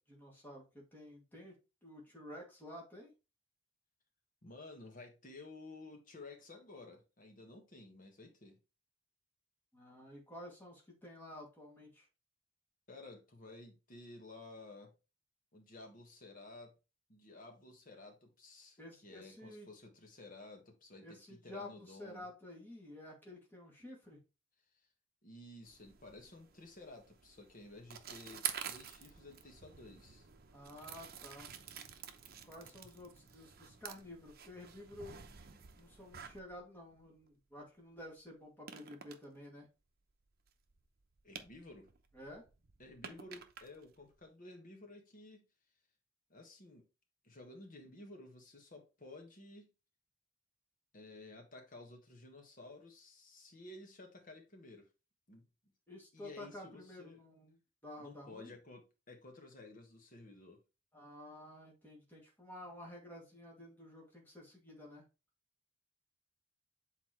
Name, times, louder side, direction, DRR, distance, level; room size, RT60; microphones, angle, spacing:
voice 1, 0.1-1.6 1.8-3.1 9.7-12.1 18.8-19.7 21.0-24.2 30.5-31.5 32.4-35.3 35.8-39.7 42.1-42.4 55.9-58.6 60.9-65.0, left 1 dB, 10° left, 2.2 m, -51 dB
voice 2, 4.4-8.6 12.9-14.9 15.5-16.8 17.1-22.3 25.2-30.3 41.2-41.9 42.8-45.4 46.3-46.9 47.2-49.7 50.9-54.9 55.3-55.5 56.1-57.2 58.0-60.6, left 2 dB, 45° left, 1.5 m, -54 dB
sound 1, 25.7-37.3 38.0-38.1 38.7-39.2 40.5-44.3, right 9 dB, 50° right, 0.8 m, -49 dB
7.9 x 4.1 x 3.0 m
head